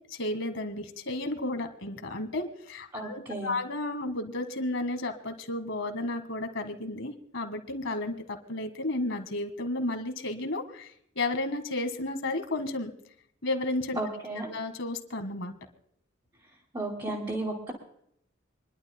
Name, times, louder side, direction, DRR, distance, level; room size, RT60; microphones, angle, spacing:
voice 1, 0.1-10.9 11.1-12.9 13.4-14.0 14.3-15.5, left 2 dB, 70° left, 7 dB, 1.7 m, -33 dB
voice 2, 2.9-3.5 14.0-14.5 16.7-17.7, right 2 dB, 25° right, -5 dB, 2.8 m, -33 dB
27.5 x 11.5 x 2.2 m, 0.71 s
head